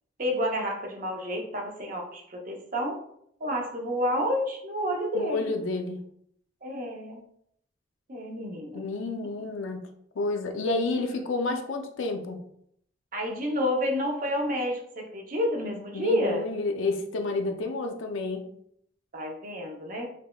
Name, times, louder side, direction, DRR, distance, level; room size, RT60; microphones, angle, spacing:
voice 1, 0.2-3.0 3.4-5.5 6.6-7.2 8.1-8.8 13.1-16.5 19.1-20.1, equal, 45° right, 1 dB, 0.6 m, -29 dB
voice 2, 5.1-6.0 8.7-9.8 10.2-12.4 15.9-18.4, left 3 dB, 85° left, 4 dB, 0.5 m, -30 dB
5.2 x 2.1 x 2.2 m, 0.70 s
head